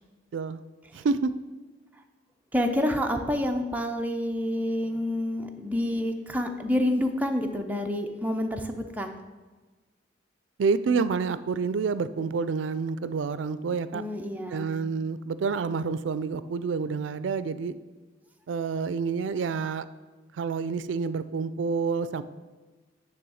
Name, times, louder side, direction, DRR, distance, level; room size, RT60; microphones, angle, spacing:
voice 1, 0.3-0.6 0.9-1.3 10.6-14.0 14.5-17.8 18.5-19.9 20.3-22.2, right 5 dB, 80° right, 14 dB, 0.4 m, -28 dB
voice 2, 2.5-9.1 13.9-14.7, left 1 dB, 10° right, 3 dB, 0.6 m, -28 dB
9.6 x 3.5 x 6.3 m, 1.3 s
head